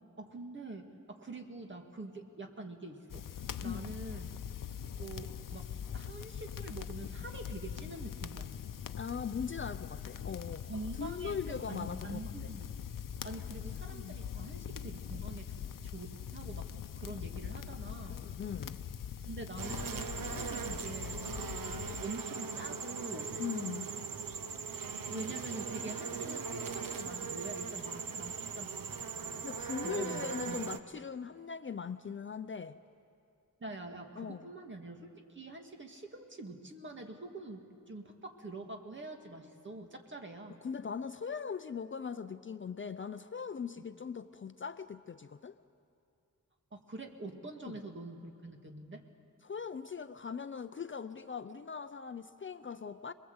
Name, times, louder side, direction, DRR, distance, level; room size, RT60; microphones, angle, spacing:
voice 1, 0.2-3.2 3.6-4.3 5.0-8.5 10.7-12.7 13.2-16.7 16.9-18.3 19.3-21.2 21.8-23.4 25.1-29.5 29.8-30.6 33.6-40.6 46.7-49.0, right 2 dB, 35° right, 3 dB, 2.1 m, -45 dB
sound 1, 3.1-22.0, left 8 dB, 75° left, 0.7 m, -42 dB
voice 2, 9.0-10.7 11.0-12.2 13.9-14.1 18.1-18.8 23.4-23.9 29.4-32.8 34.2-34.4 40.6-45.5 47.6-47.8 49.4-53.1, left 6 dB, 35° left, 10 dB, 0.5 m, -40 dB
sound 2, 19.6-30.8, right 5 dB, 90° right, 1.0 m, -40 dB
27.0 x 21.5 x 8.0 m, 2.6 s
wide cardioid pair, 130°, 33 cm